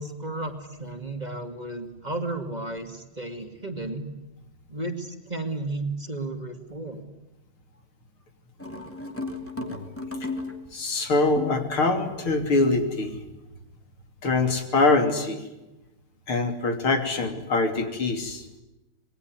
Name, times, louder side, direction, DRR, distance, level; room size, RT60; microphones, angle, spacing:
voice 1, 0.0-4.1 4.7-7.0, right 2 dB, 20° right, 5 dB, 2.3 m, -33 dB
sound 1, 8.6-10.9 11.4-11.7, left 2 dB, 5° left, 2.8 m, -34 dB
voice 2, 10.7-13.2 14.2-15.4 16.3-18.5, left 3 dB, 85° left, 6 dB, 3.9 m, -24 dB
26.5 x 21.5 x 9.6 m, 0.99 s
omnidirectional pair, 2.3 m